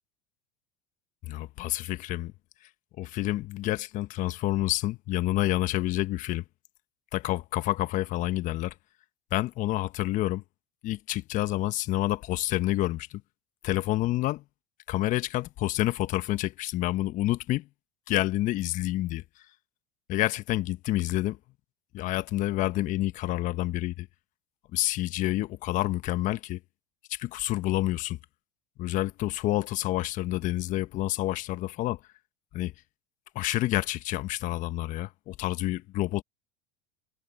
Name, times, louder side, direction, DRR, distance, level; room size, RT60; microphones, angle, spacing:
voice 1, 1.2-2.3 2.6-2.7 3.0-6.4 7.1-8.7 9.3-10.4 10.8-13.2 13.6-14.4 14.9-17.7 18.1-19.5 20.1-21.4 21.9-24.1 24.7-26.6 27.1-28.2 28.8-32.0 32.5-32.7 33.3-36.2, left 16 dB, 50° left, 1.3 m, -28 dB
hypercardioid pair, 90°, 16 cm